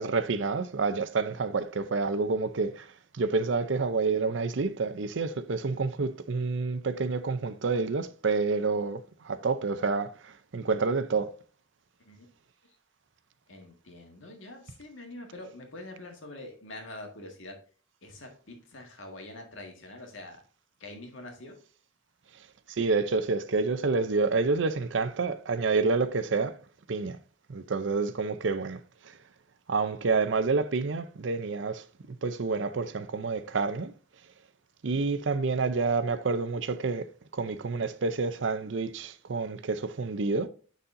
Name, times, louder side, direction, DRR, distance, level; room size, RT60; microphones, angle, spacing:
voice 1, 0.0-2.9 3.1-11.3 22.7-26.6 26.9-27.2 27.5-28.8 29.7-31.8 32.2-33.9 34.8-37.1 37.3-40.5, right 4 dB, 65° right, 0.6 m, -28 dB
voice 2, 13.5-17.6 18.0-20.4 20.8-21.5, left 1 dB, 75° left, 1.8 m, -45 dB
9.5 x 4.1 x 2.6 m
head